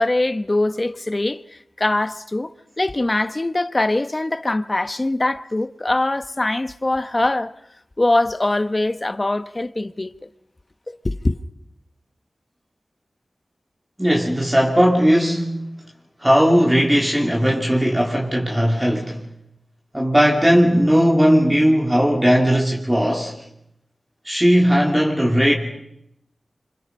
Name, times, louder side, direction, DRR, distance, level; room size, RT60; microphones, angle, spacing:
voice 1, 0.0-7.5 8.0-10.3 10.9-11.4, left 2 dB, 35° left, 0.9 m, -22 dB
voice 2, 14.0-15.6 16.2-19.2 19.9-23.3 24.2-25.6, equal, 15° right, 3.0 m, -17 dB
27.5 x 26.0 x 5.5 m
cardioid pair, 45°, 0 cm